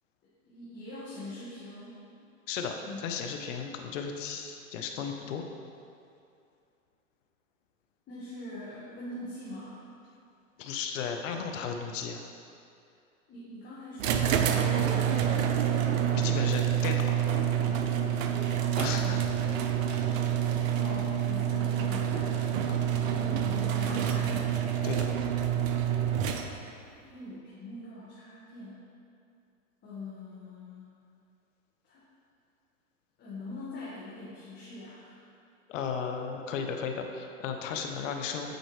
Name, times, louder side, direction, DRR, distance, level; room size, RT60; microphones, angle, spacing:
voice 1, 0.4-1.9 2.8-3.0 8.1-9.8 13.3-15.6 18.9-19.2 20.3-22.4 23.1-24.6 26.8-28.8 29.8-30.9 31.8-32.0 33.2-35.3, left 2 dB, 25° left, -9 dB, 1.6 m, -43 dB
voice 2, 2.5-5.4 10.6-12.2 16.2-17.1 18.8-19.2 19.9-20.1 22.6-22.9 24.8-25.1 35.7-38.6, left 6 dB, 60° left, 4 dB, 0.8 m, -35 dB
sound 1, 14.0-26.8, right 9 dB, 65° right, 0.7 m, -27 dB
9.3 x 4.4 x 3.2 m, 2.5 s
hypercardioid pair, 115°, 42 cm